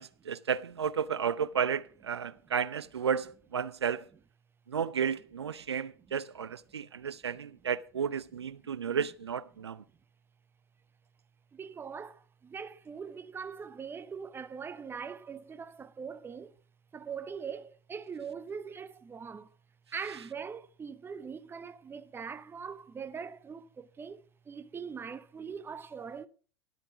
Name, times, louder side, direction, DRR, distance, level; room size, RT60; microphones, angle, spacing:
voice 1, 0.0-4.1 4.7-9.8, right 7 dB, 85° right, 0.5 m, -33 dB
voice 2, 11.5-16.6 16.9-19.5 19.9-26.3, right 6 dB, 15° right, 0.7 m, -42 dB
12.0 x 8.7 x 4.8 m
hypercardioid pair, 90°, 13 cm